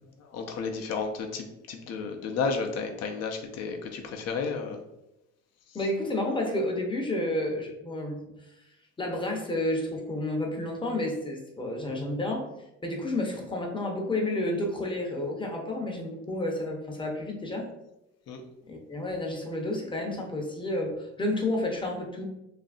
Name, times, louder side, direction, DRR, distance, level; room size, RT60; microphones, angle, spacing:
voice 1, 0.2-4.8 18.3-18.4, left 5 dB, 60° left, 3 dB, 0.5 m, -32 dB
voice 2, 5.7-8.2 9.0-12.5 12.8-17.7 18.7-22.3, left 1 dB, 15° left, 1 dB, 0.6 m, -30 dB
2.7 x 2.5 x 2.4 m, 0.90 s
cardioid pair, 90°, 30 cm